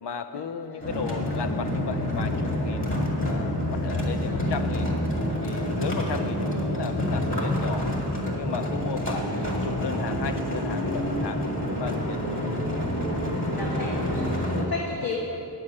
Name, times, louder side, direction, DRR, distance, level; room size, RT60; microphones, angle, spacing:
voice 1, 0.0-2.9 3.2-4.9 5.4-7.9 8.2-12.5, left 6 dB, 85° left, 9 dB, 0.7 m, -35 dB
sound 1, 0.8-14.7, left 1 dB, 30° left, 1.9 m, -27 dB
voice 2, 6.5-6.8 9.3-9.7 13.3-15.2, left 3 dB, 60° left, -2 dB, 1.2 m, -34 dB
9.7 x 7.0 x 8.6 m, 2.8 s
wide cardioid pair, 120°, 40 cm